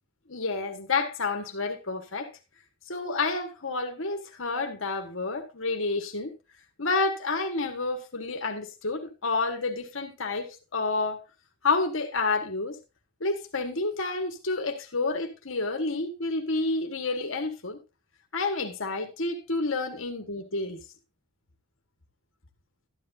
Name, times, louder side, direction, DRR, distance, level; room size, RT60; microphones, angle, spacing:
voice 1, 0.3-2.3 2.9-6.3 6.8-11.2 11.6-12.8 13.2-17.8 18.3-20.8, left 3 dB, 65° left, 1.5 m, -29 dB
13.0 x 10.5 x 2.6 m
head